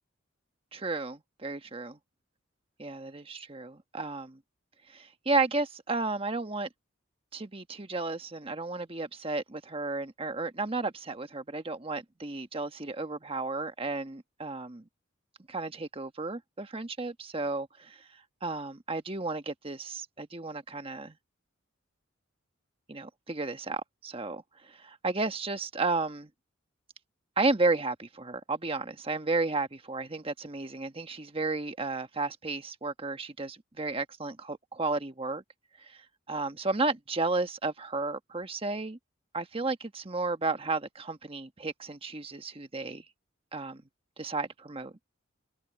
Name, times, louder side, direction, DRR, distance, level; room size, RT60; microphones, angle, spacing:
voice 1, 0.7-2.0 2.8-4.4 4.9-6.7 7.3-14.8 15.5-18.0 18.4-21.1 22.9-26.3 27.4-35.4 35.8-36.0 36.3-39.0 39.3-43.0 43.5-43.8 44.2-45.0, right 3 dB, 30° right, 1.3 m, -33 dB
head